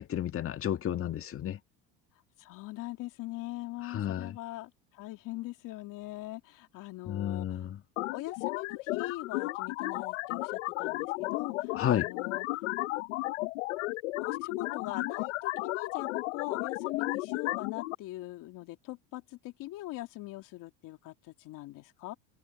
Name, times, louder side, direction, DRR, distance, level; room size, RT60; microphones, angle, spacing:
voice 1, 0.0-1.6 3.9-4.3 7.1-7.8 11.8-12.1, left 10 dB, 35° left, 1.8 m, -31 dB
voice 2, 2.4-7.6 8.1-12.6 13.4-13.5 14.2-22.1, left 17 dB, 60° left, 2.9 m, -41 dB
sound 1, 8.0-17.9, left 21 dB, 85° left, 0.9 m, -34 dB
supercardioid pair, 100°, 36 cm